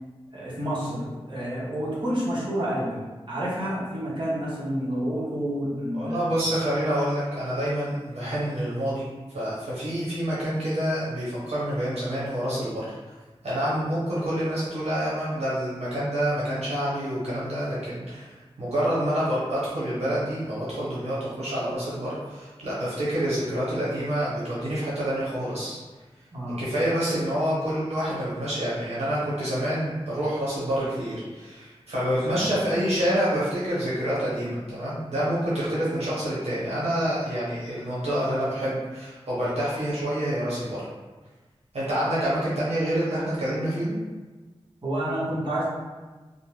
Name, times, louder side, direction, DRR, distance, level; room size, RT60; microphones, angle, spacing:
voice 1, 0.3-3.0 3.3-6.3 26.3-26.6 32.3-32.5 44.8-45.7, equal, 50° right, -9 dB, 1.0 m, -29 dB
voice 2, 5.9-12.9 13.4-25.8 26.6-40.8 41.7-44.0, equal, 90° right, -9 dB, 0.8 m, -27 dB
2.5 x 2.1 x 3.1 m, 1.3 s
wide cardioid pair, 65°, 11 cm